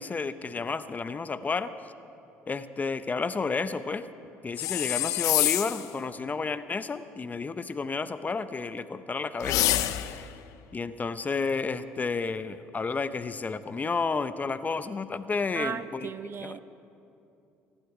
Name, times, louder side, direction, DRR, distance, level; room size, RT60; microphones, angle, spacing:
voice 1, 0.0-1.7 2.5-4.1 4.4-10.3 10.7-16.5, left 4 dB, 25° left, 13 dB, 0.7 m, -31 dB
sound 1, 4.6-5.9 9.4-10.3, left 15 dB, 70° left, 0.7 m, -26 dB
voice 2, 15.5-16.6, right 7 dB, 40° right, 14 dB, 0.7 m, -36 dB
24.0 x 11.5 x 4.9 m, 2.8 s
hypercardioid pair, 70°, 6 cm